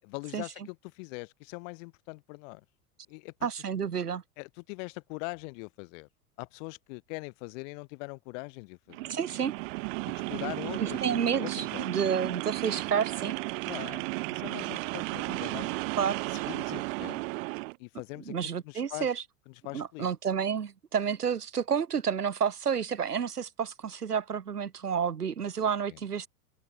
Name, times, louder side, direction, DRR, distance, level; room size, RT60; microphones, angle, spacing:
voice 1, 0.0-2.6 3.1-3.3 4.4-6.1 6.4-9.1 10.3-11.1 11.4-12.0 13.6-15.9 16.3-17.2 17.8-18.3 18.6-19.1 19.5-20.1 25.9-26.0, left 30 dB, 55° left, 6.6 m, -42 dB
voice 2, 3.4-4.2 9.1-9.5 10.8-13.4 16.0-16.4 18.3-19.2 19.7-26.3, right 7 dB, 90° right, 1.8 m, -30 dB
sound 1, 8.9-17.8, right 25 dB, 55° right, 3.6 m, -34 dB
open air
hypercardioid pair, 90°, 45 cm